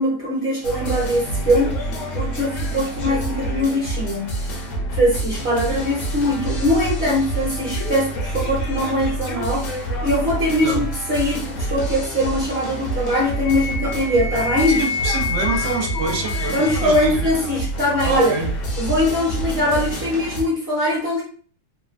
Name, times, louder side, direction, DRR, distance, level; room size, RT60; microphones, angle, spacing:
voice 1, 0.0-1.8 2.1-4.3 4.9-9.7 10.0-14.8 16.5-18.4 18.8-21.2, equal, 45° right, 1.1 m, -21 dB
sound 1, 0.6-20.4, right 1 dB, 60° left, 0.9 m, -27 dB
Wind instrument woodwind instrument, 13.4-17.1, left 5 dB, 35° left, 0.7 m, -28 dB
voice 2, 14.8-17.2 18.0-18.5, right 4 dB, 65° right, 0.6 m, -26 dB
3.0 x 2.2 x 2.5 m
omnidirectional pair, 1.9 m